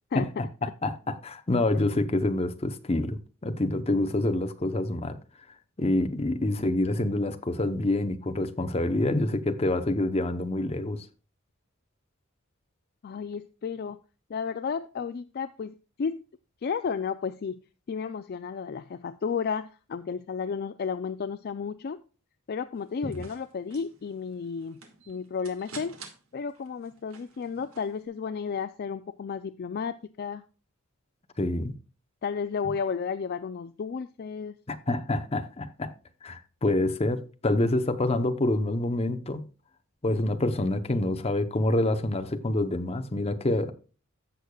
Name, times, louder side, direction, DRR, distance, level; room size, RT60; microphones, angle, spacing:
voice 1, 0.1-5.2 5.8-11.1 23.1-23.2 31.4-31.7 34.7-35.9 36.2-39.5 40.0-43.7, left 2 dB, 30° left, 0.7 m, -27 dB
voice 2, 13.0-14.0 14.3-16.2 16.6-17.6 17.9-22.0 22.5-24.8 25.1-26.0 26.3-30.4 32.2-34.5, left 6 dB, 45° left, 0.3 m, -33 dB
sound 1, 22.8-28.0, right 5 dB, 75° right, 1.7 m, -50 dB
15.0 x 6.4 x 2.3 m
head